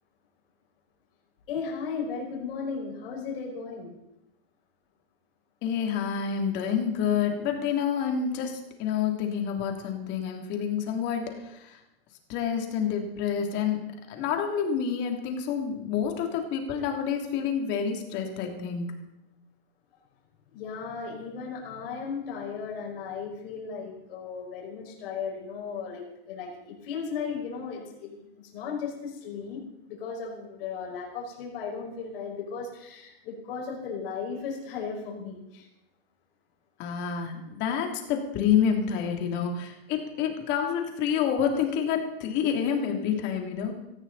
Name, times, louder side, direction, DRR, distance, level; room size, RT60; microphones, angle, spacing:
voice 1, 1.5-4.0 20.5-35.7, left 5 dB, 60° left, 0 dB, 5.6 m, -36 dB
voice 2, 5.6-11.8 12.3-13.8 14.1-18.9 36.8-43.8, left 7 dB, 35° left, 3 dB, 2.9 m, -28 dB
18.0 x 14.5 x 4.1 m, 0.88 s
supercardioid pair, 150°, 32 cm